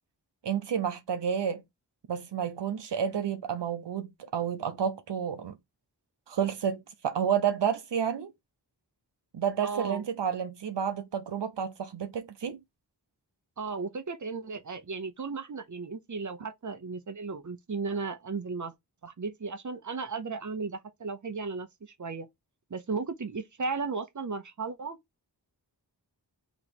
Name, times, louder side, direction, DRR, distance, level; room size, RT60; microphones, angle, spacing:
voice 1, 0.4-1.6 2.1-5.6 6.3-8.3 9.3-12.6, right 8 dB, 90° right, 0.6 m, -30 dB
voice 2, 9.6-10.0 13.6-18.7 19.0-22.3 22.7-25.0, right 4 dB, 45° right, 0.8 m, -35 dB
3.4 x 3.0 x 4.2 m
wide cardioid pair, 50°, 41 cm